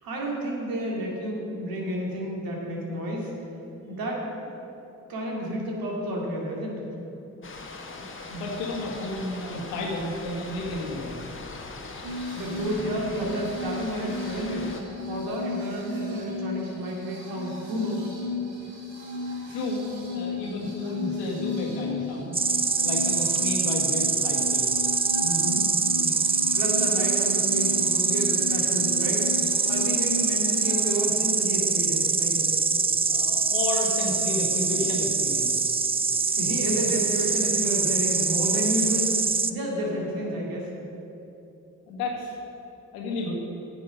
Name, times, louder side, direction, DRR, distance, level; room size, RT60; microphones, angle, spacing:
voice 1, 0.0-3.3 3.9-4.5 5.1-6.9 12.3-14.7 15.1-18.1 23.2-23.3 25.2-29.4 29.7-32.6 36.3-40.7, equal, 70° right, -2 dB, 2.4 m, -31 dB
sound 1, 7.4-14.8, left 3 dB, 35° left, 1.3 m, -41 dB
voice 2, 7.9-11.2 19.5-19.8 20.1-24.7 33.0-35.5 41.9-42.4 42.9-43.3, left 2 dB, 85° left, -1 dB, 1.6 m, -32 dB
sound 2, 12.0-30.9, left 3 dB, 90° right, 1.8 m, -35 dB
Insect, 22.3-39.5, right 4 dB, 15° right, 0.4 m, -24 dB
9.1 x 7.0 x 6.2 m, 2.9 s
hypercardioid pair, 45°, 37 cm